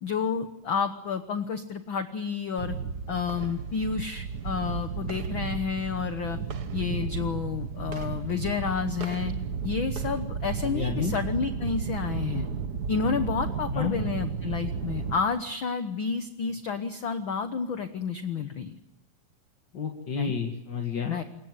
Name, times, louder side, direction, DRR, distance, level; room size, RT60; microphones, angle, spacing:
voice 1, 0.0-2.8 3.1-6.4 6.7-9.3 9.6-12.5 12.9-18.8 20.2-20.3 21.1-21.2, left 6 dB, 60° left, 8 dB, 1.3 m, -30 dB
sound 1, 2.6-15.2, right 6 dB, 55° right, 1.1 m, -33 dB
voice 2, 10.6-11.2 13.7-14.0 19.7-21.2, left 6 dB, 35° left, 1 dB, 2.2 m, -30 dB
27.0 x 22.5 x 8.1 m, 0.87 s
omnidirectional pair, 3.8 m